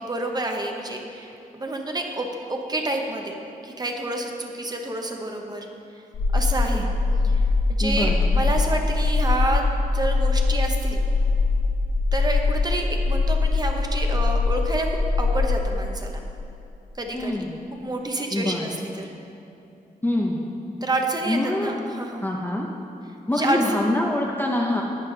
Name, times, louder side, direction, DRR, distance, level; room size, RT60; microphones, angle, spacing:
voice 1, 0.0-3.3 3.6-5.7 6.3-6.9 7.2-9.6 9.9-11.0 12.1-14.9 15.2-16.2 16.9-17.4 17.8-19.1 20.8-22.3 23.3-23.6, right 2 dB, 25° right, 2 dB, 1.1 m, -29 dB
sound 1, 6.1-15.6, left 3 dB, 85° left, 1.3 m, -22 dB
voice 2, 7.8-8.2 17.1-17.6 18.3-18.7 20.0-20.4 21.3-21.7 22.2-22.7 23.3-24.8, left 1 dB, 15° left, -2 dB, 0.8 m, -25 dB
11.0 x 8.9 x 4.0 m, 2.7 s
cardioid pair, 90°, 16 cm